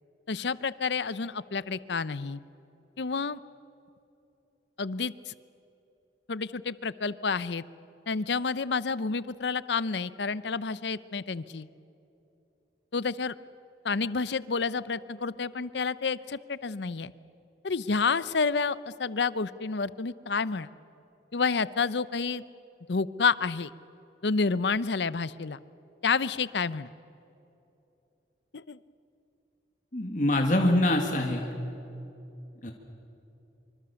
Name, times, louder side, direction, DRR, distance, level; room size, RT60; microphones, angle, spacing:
voice 1, 0.3-2.4 3.0-3.4 4.8-5.3 6.3-7.6 8.1-11.7 12.9-13.3 13.8-17.1 17.6-20.7 21.3-22.4 22.9-23.7 24.2-25.6 26.0-26.9 28.5-28.8, left 4 dB, 75° left, 17 dB, 0.7 m, -29 dB
voice 2, 29.9-31.5 32.6-32.7, left 1 dB, 45° left, 2 dB, 2.0 m, -24 dB
25.5 x 25.0 x 7.0 m, 2.9 s
head